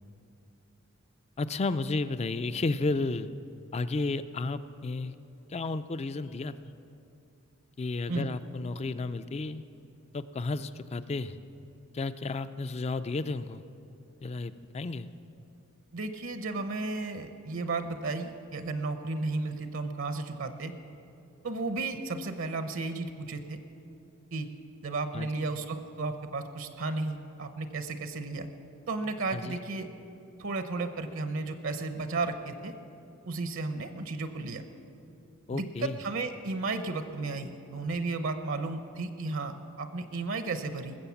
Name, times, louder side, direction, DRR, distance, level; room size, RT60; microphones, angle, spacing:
voice 1, 1.4-3.3 3.7-5.1 5.5-6.5 7.8-9.6 10.1-11.4 11.9-13.6 14.2-15.1 25.1-25.5 29.3-29.6 35.5-36.0, left 3 dB, 30° left, 13 dB, 0.4 m, -32 dB
voice 2, 15.9-20.7 21.4-23.6 24.3-24.5 24.8-28.5 28.9-29.9 30.4-32.7 33.3-34.6 35.5-41.0, right 3 dB, 65° right, 8 dB, 0.8 m, -33 dB
20.0 x 7.7 x 7.1 m, 2.7 s
head